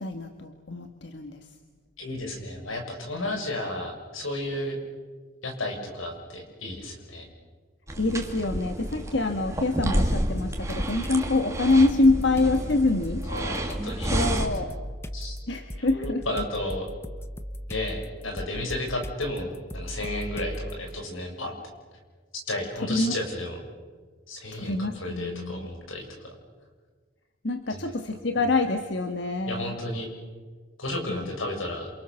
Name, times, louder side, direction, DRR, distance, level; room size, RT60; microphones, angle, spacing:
voice 1, 0.0-1.5 8.0-13.3 14.1-14.7 15.5-16.4 22.8-23.1 24.5-25.7 27.4-29.8 31.1-31.3, left 2 dB, 60° left, 6 dB, 1.6 m, -26 dB
voice 2, 2.0-4.8 5.4-7.2 13.2-14.2 15.1-15.4 15.8-16.9 17.7-21.6 22.5-23.6 24.3-26.3 27.7-27.8 29.5-30.1 30.8-31.9, left 1 dB, 90° left, 3 dB, 7.0 m, -33 dB
sound 1, 7.9-14.5, right 1 dB, 15° right, 2.4 m, -30 dB
sound 2, 10.4-11.2 11.7-20.9, equal, 10° left, 1.0 m, -38 dB
28.0 x 28.0 x 7.1 m, 1.5 s
head